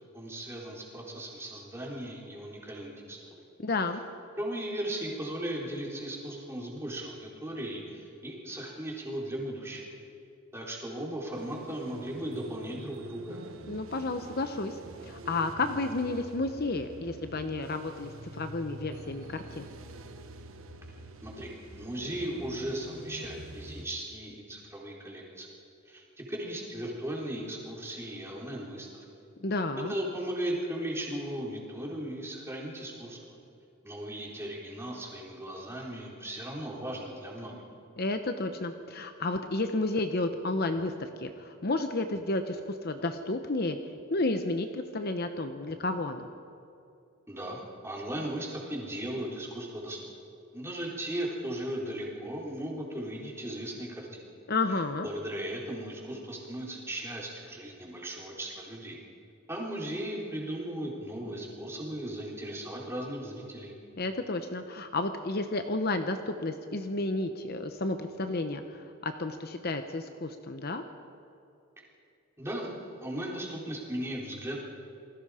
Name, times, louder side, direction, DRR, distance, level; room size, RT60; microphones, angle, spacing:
voice 1, 0.1-3.3 4.4-9.8 10.5-13.4 21.2-21.5 21.8-25.5 25.9-29.0 29.8-33.4 33.8-37.6 47.3-50.1 50.5-54.3 55.0-59.0 59.5-63.7 72.4-74.6, right 1 dB, 10° right, -3 dB, 4.0 m, -37 dB
voice 2, 3.6-4.0 13.7-19.7 29.4-29.9 38.0-43.8 44.1-46.3 54.5-55.1 64.0-70.8, left 2 dB, 45° left, 7 dB, 0.9 m, -31 dB
sound 1, 11.3-23.9, right 2 dB, 65° right, 1.2 m, -46 dB
28.0 x 20.5 x 5.0 m, 2.7 s
head